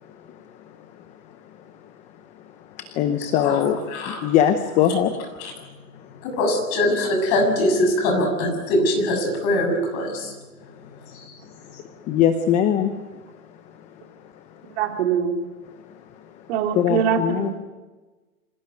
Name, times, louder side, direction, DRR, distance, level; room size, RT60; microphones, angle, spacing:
voice 1, 2.8-5.2 11.8-13.0 16.7-17.5, left 9 dB, 15° left, 10 dB, 0.7 m, -21 dB
voice 2, 3.9-4.2 5.4-5.5 6.2-10.4 11.1-11.4, left 1 dB, 30° left, 4 dB, 7.0 m, -22 dB
voice 3, 14.8-15.4 16.5-17.5, right 7 dB, 40° right, 4 dB, 2.9 m, -23 dB
26.0 x 18.0 x 9.5 m, 1.3 s
hypercardioid pair, 155°, 45 cm